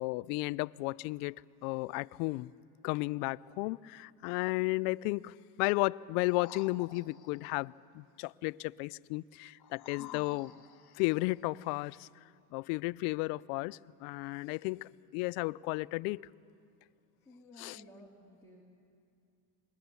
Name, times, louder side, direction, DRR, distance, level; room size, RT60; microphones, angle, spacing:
voice 1, 0.0-1.4 1.6-2.5 2.8-10.5 11.0-12.1 12.5-16.2 17.6-17.8, left 23 dB, 80° left, 0.6 m, -34 dB
sound 1, 6.2-7.5 9.6-11.2 11.9-12.0, left 9 dB, 50° left, 1.7 m, -52 dB
voice 2, 17.2-18.6, left 1 dB, 5° left, 2.8 m, -54 dB
26.0 x 22.5 x 6.9 m
supercardioid pair, 100°, 48 cm